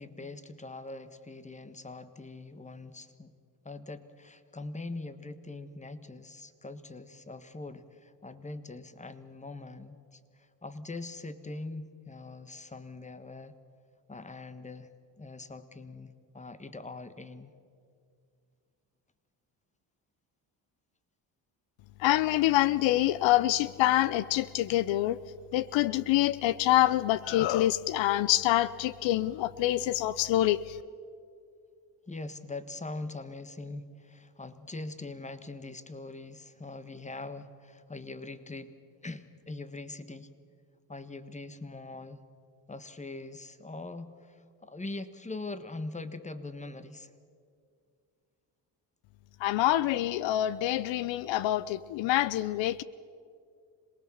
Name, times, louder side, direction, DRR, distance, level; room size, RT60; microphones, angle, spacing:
voice 1, 0.0-3.3 3.6-13.5 14.1-14.9 15.2-17.5 32.1-38.7 39.0-40.3 40.9-42.2 42.7-47.1, left 2 dB, 15° left, 12 dB, 1.5 m, -42 dB
voice 2, 22.0-25.2 25.5-30.8 49.4-52.8, left 14 dB, 80° left, 18 dB, 0.7 m, -26 dB
26.5 x 19.0 x 7.2 m, 2.3 s
supercardioid pair, 70°, 45 cm